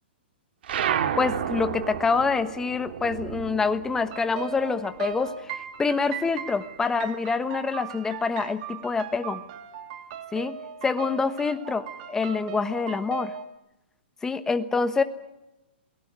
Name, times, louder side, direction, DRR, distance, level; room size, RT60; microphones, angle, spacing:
sound 1, 0.6-5.5 5.8-7.3, right 9 dB, 65° right, 2.2 m, -32 dB
voice 1, 1.1-9.4 10.3-13.3 14.2-15.0, left 4 dB, 10° left, 10 dB, 1.2 m, -26 dB
sound 2, 4.1-13.4, right 9 dB, 45° right, 2.5 m, -38 dB
27.5 x 18.5 x 9.5 m, 0.95 s
hypercardioid pair, 155°, 6 cm